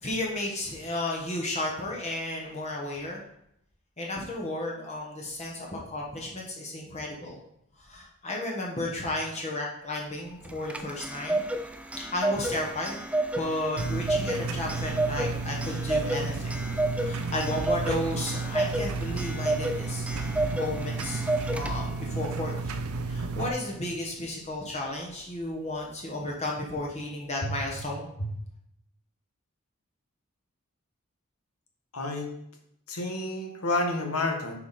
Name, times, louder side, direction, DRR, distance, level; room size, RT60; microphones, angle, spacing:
voice 1, 0.0-3.2 4.0-7.4 7.8-11.5 12.0-13.0 13.4-16.5 17.0-20.0 20.5-21.2 21.5-22.5 23.1-28.1, left 1 dB, 30° left, -2 dB, 1.3 m, -33 dB
Clock, 10.5-22.1, right 1 dB, 5° right, 0.4 m, -31 dB
sound 1, 13.8-23.5, right 3 dB, 80° right, 0.6 m, -32 dB
voice 2, 31.9-32.3 32.9-34.5, left 2 dB, 85° left, 2 dB, 1.7 m, -29 dB
9.3 x 4.9 x 4.3 m, 0.75 s
head